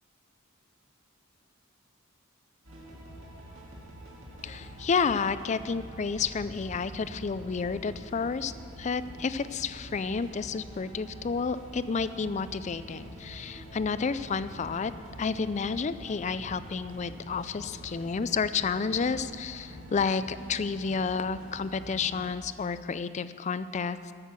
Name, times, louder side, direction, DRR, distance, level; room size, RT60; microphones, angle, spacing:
sound 1, 2.6-22.3, right 1 dB, 65° right, 2.5 m, -47 dB
sound 2, 4.2-22.0, left 1 dB, 90° right, 2.8 m, -54 dB
voice 1, 4.4-8.5 8.8-14.9 15.2-24.1, left 5 dB, 35° left, 14 dB, 0.3 m, -30 dB
sound 3, 6.1-11.5, equal, 55° left, 1.3 m, -51 dB
13.5 x 6.5 x 7.5 m, 2.4 s
head